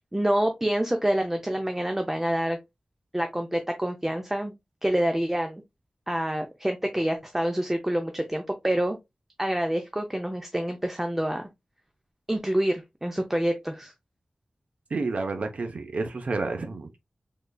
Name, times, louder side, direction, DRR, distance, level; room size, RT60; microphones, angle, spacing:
voice 1, 0.1-2.6 3.1-4.5 4.8-5.6 6.1-9.0 9.4-11.5 12.3-13.9, right 1 dB, 15° right, 0.5 m, -27 dB
voice 2, 14.9-17.0, right 3 dB, 65° right, 0.6 m, -30 dB
3.7 x 3.2 x 2.2 m
wide cardioid pair, 105°, 2 cm